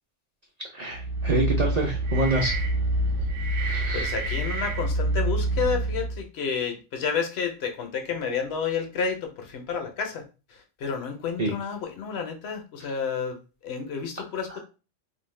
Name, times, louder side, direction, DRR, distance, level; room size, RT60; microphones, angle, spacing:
voice 1, 0.7-2.5 3.6-4.1 11.4-11.5 14.5-14.6, right 2 dB, 50° right, -1 dB, 0.5 m, -27 dB
sound 1, 0.9-6.2, right 1 dB, 85° right, 1.0 m, -26 dB
voice 2, 3.9-10.2 10.5-14.6, left 6 dB, 70° left, 5 dB, 0.8 m, -30 dB
2.5 x 2.0 x 3.1 m, 0.32 s
omnidirectional pair, 1.2 m